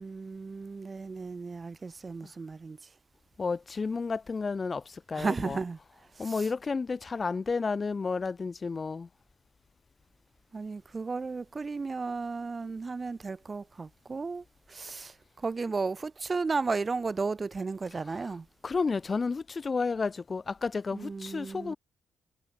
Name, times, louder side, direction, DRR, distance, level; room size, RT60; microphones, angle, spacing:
voice 1, 0.0-2.9 5.1-6.5 10.5-18.5 20.9-21.8, right 4 dB, 30° right, 0.6 m, -34 dB
voice 2, 3.4-4.8 5.1-5.6 6.2-9.1 18.6-21.8, left 4 dB, 30° left, 0.3 m, -31 dB
cardioid pair, 90°, 0 cm